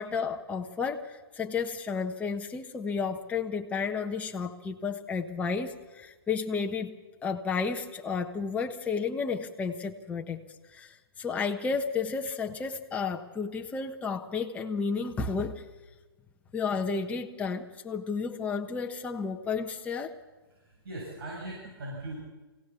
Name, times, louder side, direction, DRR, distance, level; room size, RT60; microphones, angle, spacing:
voice 1, 0.0-6.9 7.2-10.4 10.7-15.6 16.5-20.1, left 5 dB, 10° left, 3 dB, 1.3 m, -32 dB
voice 2, 20.5-22.1, right 1 dB, 65° right, -3 dB, 7.2 m, -40 dB
25.5 x 17.0 x 7.1 m, 1.2 s
hypercardioid pair, 140°, 13 cm